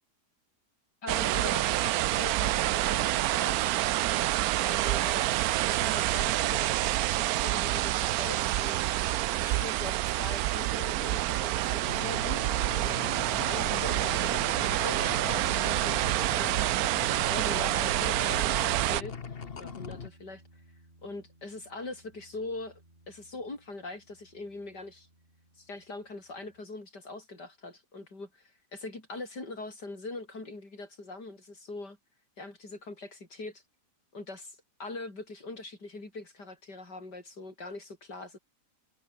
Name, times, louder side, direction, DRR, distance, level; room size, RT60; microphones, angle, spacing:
voice 1, 1.0-3.8 4.6-5.3 5.7-8.9 9.4-14.4 14.8-16.0 16.3-16.6 17.3-20.4 21.0-22.8 23.1-25.1 25.6-32.0 32.4-33.6 34.1-38.4, left 2 dB, 90° left, 6.4 m, -42 dB
sound 1, 1.1-19.0, right 15 dB, 70° right, 1.0 m, -28 dB
sound 2, 11.9-20.1, left 5 dB, 40° left, 1.4 m, -41 dB
sound 3, 13.5-26.6, right 1 dB, 30° right, 5.8 m, -55 dB
omnidirectional pair, 1.8 m